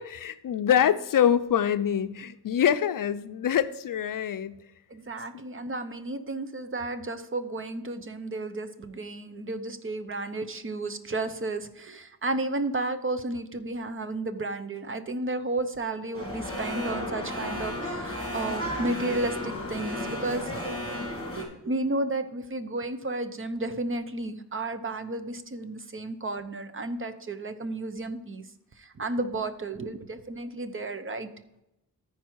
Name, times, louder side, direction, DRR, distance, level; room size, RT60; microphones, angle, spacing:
voice 1, 0.0-4.6, left 9 dB, 60° left, 12 dB, 0.5 m, -25 dB
voice 2, 4.9-20.6 21.2-28.4 28.8-31.3, right 2 dB, 35° right, 10 dB, 0.7 m, -32 dB
sound 1, 16.1-21.4, left 1 dB, 15° left, 3.1 m, -33 dB
14.0 x 4.7 x 4.6 m, 0.87 s
wide cardioid pair, 120°, 38 cm